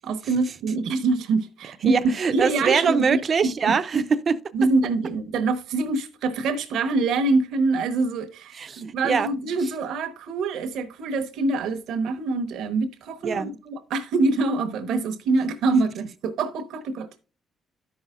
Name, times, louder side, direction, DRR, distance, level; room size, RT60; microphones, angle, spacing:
voice 1, 0.0-2.0 2.3-3.7 4.5-17.2, right 3 dB, 85° right, 1.0 m, -25 dB
voice 2, 1.8-4.4 8.5-9.3 13.2-13.5, right 5 dB, 45° right, 0.5 m, -23 dB
13.0 x 5.5 x 2.4 m
cardioid pair, 90°, 0 cm